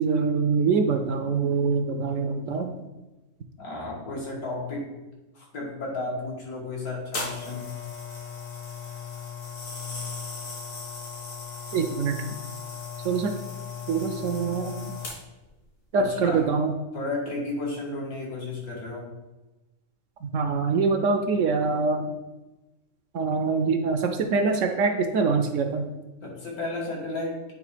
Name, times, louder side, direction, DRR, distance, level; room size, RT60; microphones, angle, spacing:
voice 1, 0.0-2.7 11.7-12.2 13.0-13.3 13.9-14.8 15.9-16.7 20.2-22.1 23.1-25.9, right 4 dB, 65° right, 6 dB, 0.9 m, -24 dB
voice 2, 3.6-4.9 5.3-7.7 15.9-16.4 16.9-19.1 26.2-27.4, left 2 dB, 75° left, -3 dB, 2.3 m, -33 dB
sound 1, 7.1-15.5 16.2-16.4, left 5 dB, 60° left, 2.0 m, -37 dB
8.5 x 3.3 x 4.9 m, 1.1 s
omnidirectional pair, 1.6 m